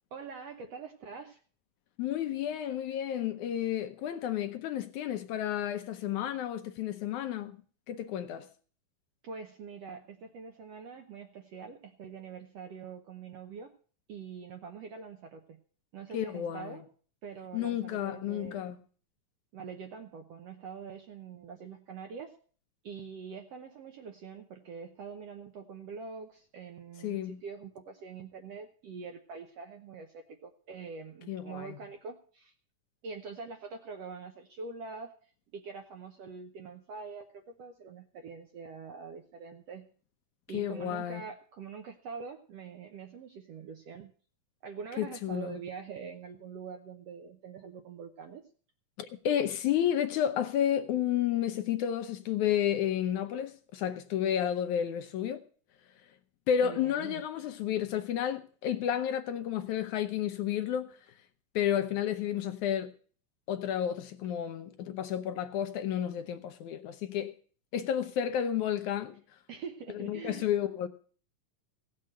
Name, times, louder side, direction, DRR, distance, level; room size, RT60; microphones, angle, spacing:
voice 1, 0.1-1.4 9.2-13.7 14.1-15.6 15.9-16.8 17.2-18.7 19.5-22.3 22.8-32.5 33.0-35.1 35.5-39.9 40.5-44.1 44.6-48.4 56.6-57.2 69.5-70.5, right 5 dB, 70° right, 1.6 m, -44 dB
voice 2, 2.0-7.6 7.9-8.5 16.1-16.8 17.5-18.8 27.0-27.4 31.3-31.8 40.5-41.2 45.0-45.6 49.0-55.4 56.5-61.0 61.6-62.9 63.5-67.3 67.7-69.2 69.9-70.9, left 10 dB, 75° left, 2.0 m, -31 dB
16.5 x 6.6 x 7.5 m
omnidirectional pair, 3.9 m